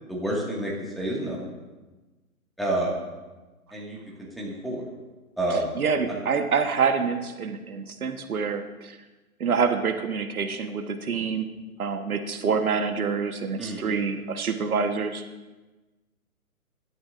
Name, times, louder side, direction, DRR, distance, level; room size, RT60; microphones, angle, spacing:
voice 1, 0.1-1.5 2.6-3.0 3.7-4.9 5.4-5.7 6.1-6.2 13.6-14.0, right 1 dB, ahead, -5 dB, 1.9 m, -29 dB
voice 2, 5.8-9.0 9.4-11.5 11.8-15.3, right 5 dB, 70° right, 7 dB, 1.4 m, -26 dB
23.0 x 12.5 x 2.6 m, 1.2 s
hypercardioid pair, 140°, 44 cm